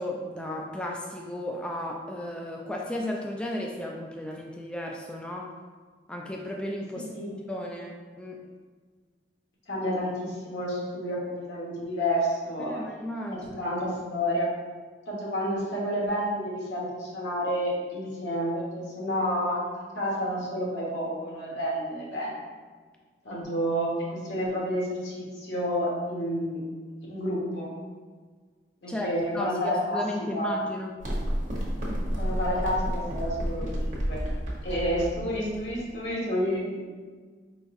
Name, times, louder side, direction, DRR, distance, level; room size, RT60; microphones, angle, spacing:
voice 1, 0.0-5.5 6.1-7.1 7.5-8.4 12.7-13.4 28.9-29.1 29.3-30.9, left 1 dB, 5° left, -1 dB, 0.3 m, -34 dB
voice 2, 9.7-12.8 13.3-14.5 15.1-19.6 19.9-22.4 23.2-23.9 24.2-26.6 27.1-27.7 28.8-30.0 30.3-30.6 32.1-34.2 34.6-36.8, equal, 85° left, -4 dB, 1.3 m, -30 dB
sound 1, 31.0-36.1, equal, 45° right, 1.0 m, -31 dB
4.7 x 3.9 x 2.5 m, 1.5 s
head